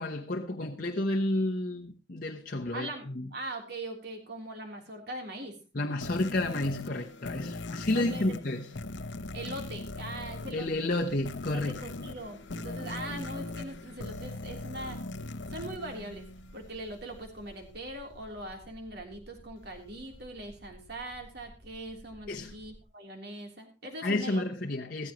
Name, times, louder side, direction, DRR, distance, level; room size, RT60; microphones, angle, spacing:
voice 1, 0.0-3.3 5.7-8.7 10.5-11.9 22.3-22.6 24.0-25.1, left 1 dB, 45° left, 1.0 m, -31 dB
voice 2, 2.7-5.6 7.9-8.3 9.3-10.9 11.5-15.0 15.5-16.2 16.5-24.4, right 1 dB, 55° right, 3.5 m, -41 dB
sound 1, 6.0-16.8, left 2 dB, 70° left, 0.8 m, -40 dB
sound 2, 12.8-22.8, equal, 75° right, 2.6 m, -55 dB
16.0 x 14.5 x 3.1 m
head